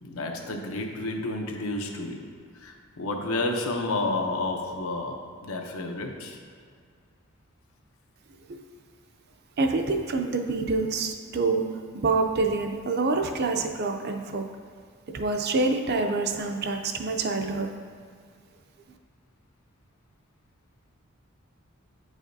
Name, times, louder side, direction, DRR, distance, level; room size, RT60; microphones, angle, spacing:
voice 1, 0.0-2.3 2.5-6.4, left 2 dB, 85° left, 2 dB, 0.7 m, -31 dB
voice 2, 9.6-11.6 11.9-14.4 15.1-17.7, right 3 dB, 50° right, 4 dB, 0.4 m, -26 dB
8.4 x 4.9 x 2.7 m, 2.1 s
head